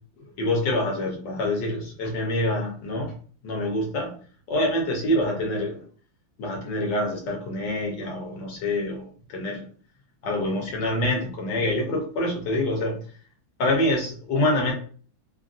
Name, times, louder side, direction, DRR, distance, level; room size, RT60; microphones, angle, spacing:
voice 1, 0.4-3.1 3.4-4.1 4.5-5.8 6.4-9.7 10.2-13.0 13.6-14.7, left 1 dB, 70° left, 1 dB, 1.4 m, -26 dB
3.4 x 2.5 x 2.4 m, 0.44 s
omnidirectional pair, 2.1 m